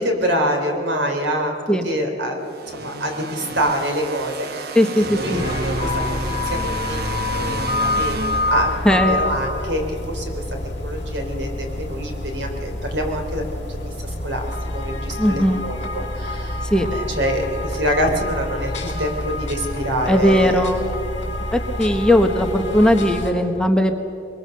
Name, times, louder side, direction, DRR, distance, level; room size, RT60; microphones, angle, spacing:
voice 1, 0.0-1.5 1.8-8.7 9.1-10.4 10.8-14.5 14.7-16.6 16.9-20.7 21.9-22.0, equal, 75° right, 3 dB, 3.6 m, -26 dB
sound 1, 2.5-9.2, right 2 dB, 60° right, 1.0 m, -31 dB
voice 2, 4.7-5.4 8.8-9.3 15.2-15.6 16.7-16.9 20.1-20.8 21.5-23.9, equal, 5° left, 5 dB, 1.1 m, -18 dB
sound 2, 5.3-23.3, left 2 dB, 40° left, 5.5 m, -27 dB
23.0 x 22.0 x 6.6 m, 2.8 s
head